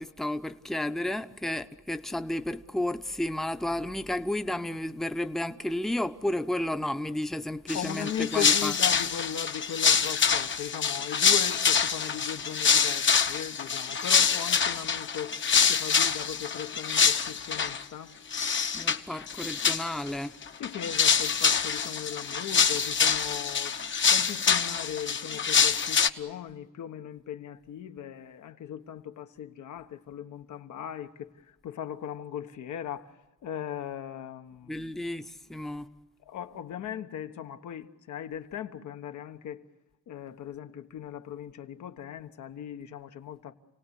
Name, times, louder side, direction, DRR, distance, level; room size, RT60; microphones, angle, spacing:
voice 1, 0.0-8.7 18.7-20.4 34.7-35.9, left 1 dB, ahead, 0.8 m, -32 dB
voice 2, 7.7-15.4 15.7-18.2 20.6-23.7 24.1-35.0 36.2-39.6 40.1-43.5, left 9 dB, 75° left, 1.3 m, -38 dB
sound 1, 7.7-17.8 18.3-19.0 19.3-20.1 20.4-26.1, left 6 dB, 40° left, 1.0 m, -25 dB
29.0 x 18.0 x 8.3 m
cardioid pair, 90°, 30 cm